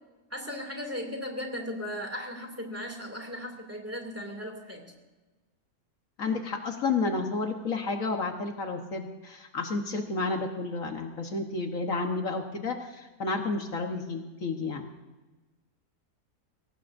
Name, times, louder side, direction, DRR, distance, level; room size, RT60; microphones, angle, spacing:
voice 1, 0.3-4.8, equal, 10° right, 2 dB, 2.6 m, -37 dB
voice 2, 6.2-14.8, left 3 dB, 65° left, 4 dB, 1.7 m, -31 dB
22.5 x 18.0 x 2.6 m, 1.2 s
omnidirectional pair, 1.5 m